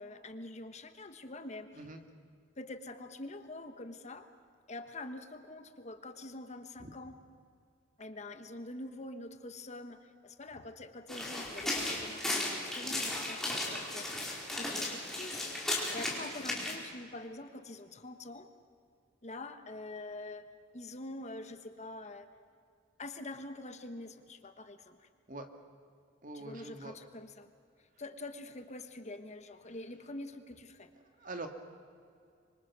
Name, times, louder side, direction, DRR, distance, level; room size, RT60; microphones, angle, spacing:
voice 1, 0.0-1.8 2.5-4.3 4.7-7.2 8.0-18.5 19.2-22.3 23.0-25.1 26.3-27.5 28.0-30.9, left 2 dB, 35° left, 9 dB, 1.2 m, -45 dB
sound 1, 11.1-16.8, left 1 dB, ahead, 4.4 m, -35 dB
voice 2, 26.2-26.9 31.2-31.5, right 2 dB, 40° right, 6 dB, 2.1 m, -43 dB
26.0 x 25.0 x 6.2 m, 2.3 s
head